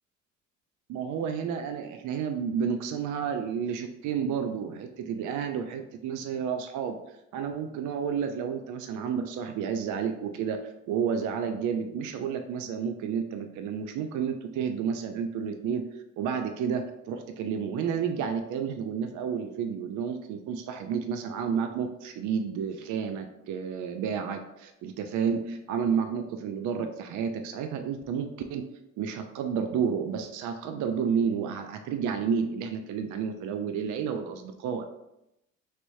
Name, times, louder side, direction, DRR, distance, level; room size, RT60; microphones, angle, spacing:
voice 1, 0.9-7.0 7.3-10.6 10.9-15.8 16.2-28.7 29.0-34.9, right 7 dB, 55° right, 6 dB, 0.4 m, -31 dB
3.2 x 3.0 x 2.6 m, 0.86 s
hypercardioid pair, 60°, 37 cm